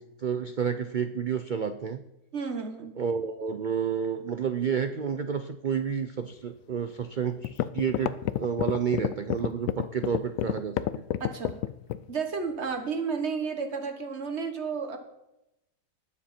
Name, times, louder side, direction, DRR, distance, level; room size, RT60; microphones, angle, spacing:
voice 1, 0.0-2.0 3.0-11.0, right 7 dB, 80° right, 10 dB, 0.4 m, -30 dB
voice 2, 2.3-3.0 11.2-11.6 12.1-15.0, right 5 dB, 45° right, 6 dB, 1.7 m, -32 dB
sound 1, 7.0-7.1 7.4-12.1, left 12 dB, 70° left, 0.9 m, -28 dB
20.0 x 7.4 x 4.4 m, 0.89 s
omnidirectional pair, 1.6 m